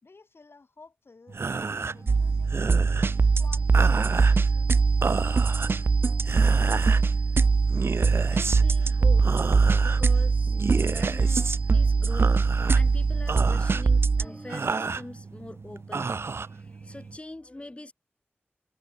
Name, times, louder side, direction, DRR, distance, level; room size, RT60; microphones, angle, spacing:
voice 1, 0.0-4.7, left 3 dB, 70° left, 5.1 m, -53 dB
sound 1, 1.3-17.2, right 4 dB, 85° right, 1.1 m, -33 dB
sound 2, 1.7-15.2, right 1 dB, 30° right, 7.2 m, -47 dB
sound 3, 2.1-14.3, right 4 dB, 65° right, 0.3 m, -22 dB
voice 2, 8.3-9.3 9.8-12.5 12.7-17.9, left 2 dB, 30° left, 2.0 m, -43 dB
wide cardioid pair, 60°, 4 cm